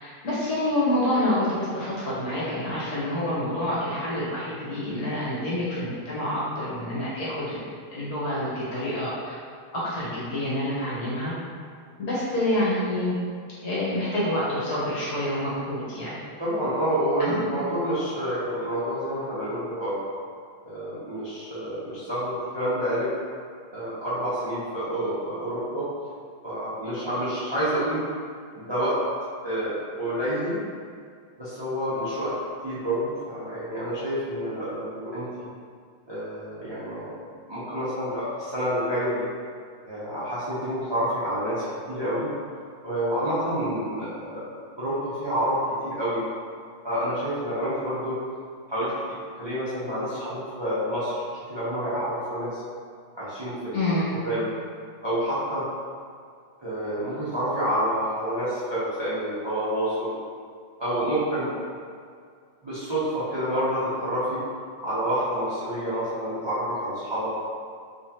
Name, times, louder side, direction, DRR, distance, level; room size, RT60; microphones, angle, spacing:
voice 1, 0.0-7.6 7.9-9.3 9.7-11.3 12.0-13.2 13.6-16.2 17.2-17.5 53.7-54.1, left 1 dB, 65° left, -9 dB, 1.6 m, -27 dB
voice 2, 16.4-20.0 20.6-23.1 23.7-25.9 26.4-28.0 28.6-29.0 29.4-30.6 31.4-32.3 32.6-35.5 36.1-37.1 37.5-39.3 39.8-42.3 42.8-44.4 44.8-45.6 45.8-46.2 46.8-48.1 48.7-48.9 49.4-51.2 51.5-52.6 53.2-54.5 55.0-55.6 56.6-60.1 60.8-61.5 62.6-64.4 64.8-67.3, equal, 45° right, -12 dB, 0.3 m, -28 dB
3.5 x 3.1 x 2.9 m, 2.2 s
omnidirectional pair, 2.0 m